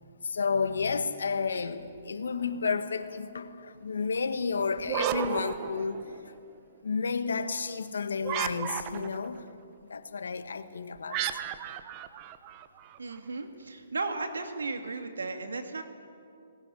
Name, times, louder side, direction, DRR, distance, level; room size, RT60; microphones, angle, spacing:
voice 1, 0.2-6.0 6.2-6.3 6.8-9.5 9.9-11.4, left 5 dB, 75° left, 1.7 m, -31 dB
sound 1, 4.8-6.4 8.2-9.3 11.1-13.0, right 10 dB, 30° right, 1.2 m, -33 dB
voice 2, 13.0-15.8, right 3 dB, 85° right, 2.3 m, -35 dB
19.5 x 18.5 x 10.0 m
hypercardioid pair, 140°, 0 cm